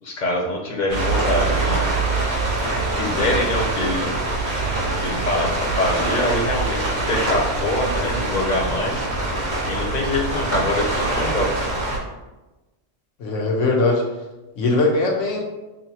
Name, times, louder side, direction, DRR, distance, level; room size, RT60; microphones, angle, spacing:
voice 1, 0.0-1.9 3.0-4.0 5.0-9.0 9.7-11.5, left 1 dB, 45° left, -1 dB, 0.8 m, -24 dB
sound 1, 0.9-12.0, right 2 dB, 80° right, 1.8 m, -24 dB
voice 2, 13.2-14.0 14.6-15.4, left 3 dB, 85° left, 0 dB, 1.2 m, -20 dB
6.4 x 2.1 x 2.8 m, 1.1 s
omnidirectional pair, 1.3 m